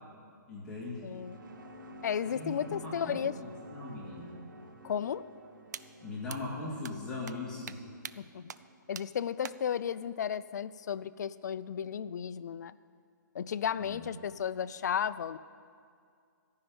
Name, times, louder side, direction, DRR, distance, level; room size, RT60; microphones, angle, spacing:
voice 1, 0.5-1.1 2.2-4.4 6.0-7.8 13.8-14.0, left 2 dB, 5° left, -9 dB, 2.3 m, -40 dB
sound 1, 0.9-9.5, equal, 80° right, 1.4 m, -51 dB
voice 2, 1.0-1.4 2.0-3.3 4.8-5.3 8.2-8.5 8.9-12.8 13.3-15.4, left 8 dB, 60° left, 15 dB, 0.4 m, -34 dB
sound 2, 5.7-5.8 6.3-6.4 6.8-6.9 7.3-7.4 7.7-7.8 8.0-8.1 8.5-8.6 9.0-9.1 9.4-9.5, right 8 dB, 60° right, 0.4 m, -41 dB
14.5 x 5.7 x 8.7 m, 2.3 s
hypercardioid pair, 165°, 10 cm